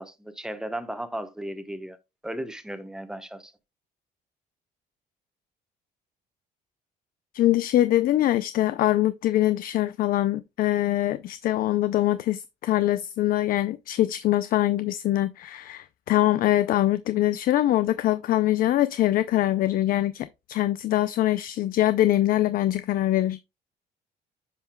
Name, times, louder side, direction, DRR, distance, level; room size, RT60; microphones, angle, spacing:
voice 1, 0.0-2.0 2.2-3.5, right 1 dB, 5° right, 1.0 m, -35 dB
voice 2, 7.3-23.4, left 14 dB, 55° left, 0.4 m, -23 dB
10.0 x 5.7 x 2.2 m
cardioid pair, 110°, 17 cm